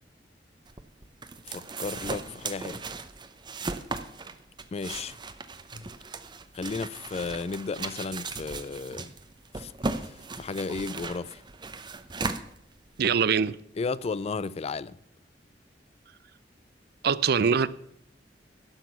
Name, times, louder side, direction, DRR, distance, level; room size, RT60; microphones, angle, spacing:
sound 1, 0.7-13.1, right 3 dB, 25° right, 0.7 m, -37 dB
voice 1, 1.5-2.9 4.7-5.2 5.7-5.8 6.5-9.1 9.6-9.7 10.1-11.4 13.8-15.0, left 4 dB, 35° left, 0.4 m, -34 dB
voice 2, 13.0-13.6 17.0-17.7, right 6 dB, 60° right, 0.5 m, -23 dB
12.0 x 6.1 x 8.3 m
head